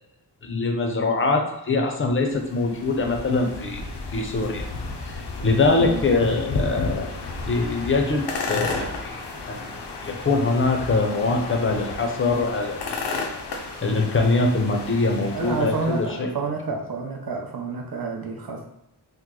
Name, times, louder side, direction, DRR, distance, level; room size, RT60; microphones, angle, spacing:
voice 1, 0.4-3.9 4.1-4.6 5.1-7.1 7.5-13.2 13.8-16.3, left 3 dB, 30° left, 3 dB, 0.6 m, -23 dB
sound 1, 2.1-16.2, left 3 dB, 80° left, 0.6 m, -33 dB
voice 2, 5.7-6.1 15.3-18.6, right 4 dB, 60° right, 1 dB, 0.7 m, -29 dB
3.0 x 2.1 x 3.7 m, 0.84 s
wide cardioid pair, 85°, 40 cm